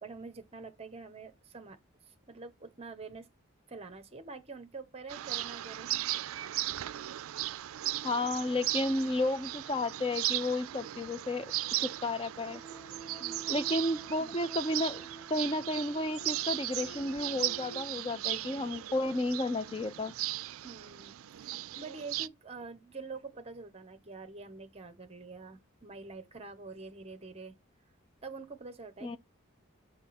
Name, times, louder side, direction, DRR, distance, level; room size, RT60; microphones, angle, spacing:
voice 1, 0.0-1.8 2.3-3.3 3.7-5.9 13.2-13.6 20.6-27.6 28.2-29.2, right 4 dB, 30° right, 1.0 m, -46 dB
sound 1, 5.1-22.3, right 15 dB, 75° right, 0.3 m, -37 dB
voice 2, 8.0-11.5 11.8-12.6 13.5-15.0 15.3-20.1 29.0-29.2, left 2 dB, 25° left, 0.5 m, -32 dB
sound 2, 12.5-17.8, right 3 dB, 75° left, 2.6 m, -49 dB
6.3 x 3.6 x 4.2 m
head